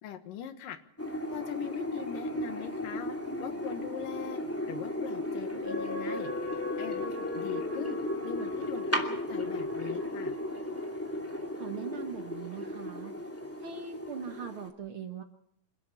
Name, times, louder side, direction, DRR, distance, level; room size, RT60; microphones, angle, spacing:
voice 1, 0.0-0.8 1.3-3.1 3.4-4.4 4.6-6.3 6.8-9.0 9.3-10.3, left 9 dB, 90° left, 8 dB, 3.2 m, -41 dB
sound 1, 1.0-14.7, left 1 dB, 5° left, 2.0 m, -35 dB
sound 2, 5.6-11.3 11.8-11.9, left 3 dB, 25° left, 7.6 m, -41 dB
voice 2, 11.5-13.2 13.6-15.2, right 7 dB, 50° right, 5 dB, 2.0 m, -41 dB
27.5 x 12.5 x 8.4 m, 0.72 s
omnidirectional pair, 3.7 m